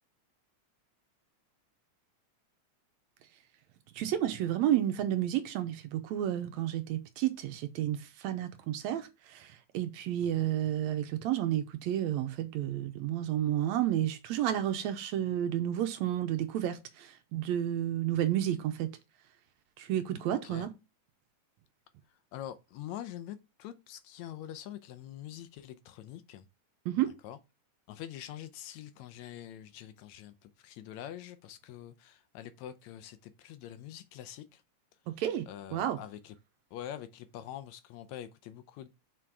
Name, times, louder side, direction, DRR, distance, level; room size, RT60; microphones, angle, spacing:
voice 1, 3.9-18.9 19.8-20.7 26.9-27.1 35.1-35.5 35.7-36.0, right 12 dB, 75° right, 1.8 m, -31 dB
voice 2, 22.3-26.5 27.2-27.4 27.9-34.6 35.5-36.3 36.7-38.9, left 11 dB, 75° left, 1.9 m, -45 dB
6.1 x 4.6 x 4.6 m
omnidirectional pair, 3.4 m